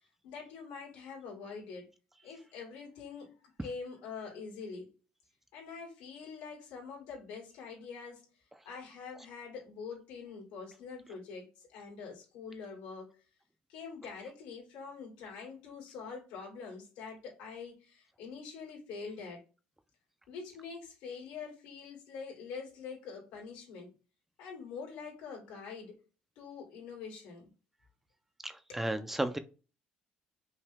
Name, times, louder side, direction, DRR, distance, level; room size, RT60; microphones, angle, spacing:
voice 1, 0.2-1.9 2.2-4.9 5.5-8.3 8.6-13.2 13.7-19.4 20.3-23.9 24.4-26.0 26.4-27.5 28.7-28.8, left 5 dB, 90° left, -2 dB, 2.4 m, -45 dB
voice 2, 28.4-29.4, right 1 dB, 10° right, 10 dB, 0.4 m, -33 dB
5.6 x 2.2 x 3.5 m, 0.34 s
cardioid pair, 130°, 3 cm